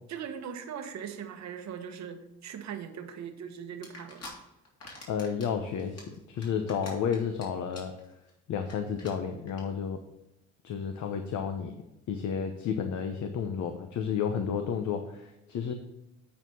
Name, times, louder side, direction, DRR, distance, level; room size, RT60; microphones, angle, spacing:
voice 1, 0.1-4.3 14.3-14.4, right 8 dB, 65° right, 6 dB, 1.1 m, -40 dB
sound 1, 3.8-4.3 4.7-5.5 5.8-7.4 7.7-8.0 8.3-8.4 8.6-8.7 9.0-9.1 9.5-9.6, left 3 dB, 55° left, 3.2 m, -45 dB
voice 2, 5.1-7.9 8.5-10.0 10.6-11.8 12.1-15.7, left 7 dB, 70° left, 6 dB, 0.9 m, -31 dB
8.7 x 4.7 x 5.4 m, 0.92 s
cardioid pair, 90°, 30 cm